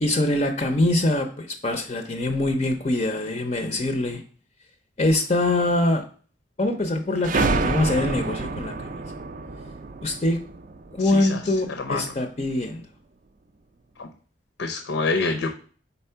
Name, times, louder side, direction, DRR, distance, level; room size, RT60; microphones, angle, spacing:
voice 1, 0.0-4.2 5.0-6.0 6.6-8.9 10.0-10.4 10.9-12.8, left 2 dB, 35° left, 6 dB, 0.5 m, -24 dB
sound 1, 7.2-11.7, right 3 dB, 45° right, 0.4 m, -28 dB
voice 2, 11.1-11.4 11.9-12.0 14.0-14.1 14.6-15.5, left 3 dB, 80° left, 7 dB, 0.6 m, -26 dB
4.4 x 4.2 x 5.5 m, 0.42 s
head